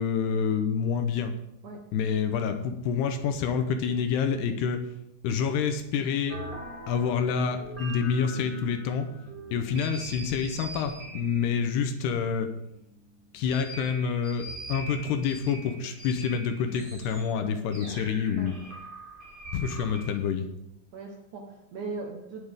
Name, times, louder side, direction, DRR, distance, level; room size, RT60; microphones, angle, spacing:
voice 1, 0.0-1.3 1.9-4.8 5.2-6.4 6.9-9.1 9.5-12.5 13.3-18.5 19.5-20.5, left 6 dB, 80° left, 7 dB, 2.8 m, -27 dB
sound 1, 6.3-20.2, right 1 dB, 35° right, 0.8 m, -42 dB
voice 2, 20.9-22.5, right 3 dB, 65° right, 0 dB, 2.0 m, -39 dB
19.0 x 8.1 x 3.6 m, 0.82 s
omnidirectional pair, 5.1 m